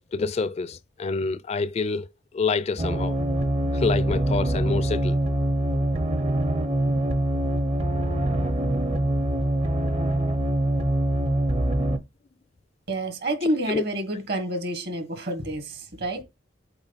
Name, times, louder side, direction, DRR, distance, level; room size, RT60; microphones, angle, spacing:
voice 1, 0.1-2.1 2.3-3.2 3.7-5.2 13.7-13.8, left 4 dB, 35° left, 0.4 m, -27 dB
sound 1, 2.8-12.0, right 1 dB, 35° right, 0.7 m, -24 dB
voice 2, 12.9-16.2, right 1 dB, 60° right, 1.6 m, -28 dB
7.9 x 3.6 x 4.0 m
head